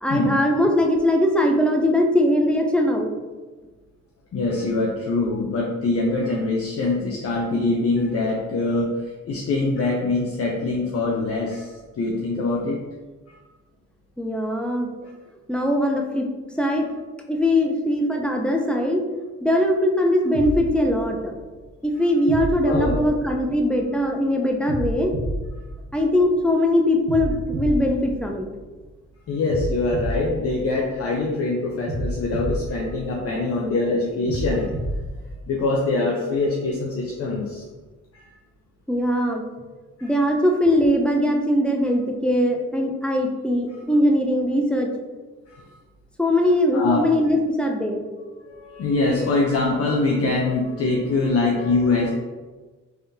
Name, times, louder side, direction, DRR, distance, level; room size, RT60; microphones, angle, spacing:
voice 1, 0.0-3.1 14.2-14.9 15.5-16.3 16.6-16.9 17.3-19.0 19.4-21.3 21.8-25.2 25.9-28.5 38.9-39.4 40.0-44.9 46.2-48.0, left 1 dB, 5° left, 1 dB, 0.5 m, -21 dB
voice 2, 4.3-12.8 13.3-13.4 22.7-23.1 29.3-34.7 35.5-37.6 38.1-38.3 40.0-40.1 45.5-45.6 46.7-47.0 48.4-52.1, left 3 dB, 50° left, -2 dB, 0.6 m, -24 dB
sound 1, 20.3-21.7 22.3-24.0 24.7-26.5 27.1-28.9 29.5-31.3 31.9-33.6 34.3-35.7, right 1 dB, 40° right, 0.7 m, -30 dB
3.5 x 3.4 x 2.7 m, 1.3 s
cardioid pair, 90°, 30 cm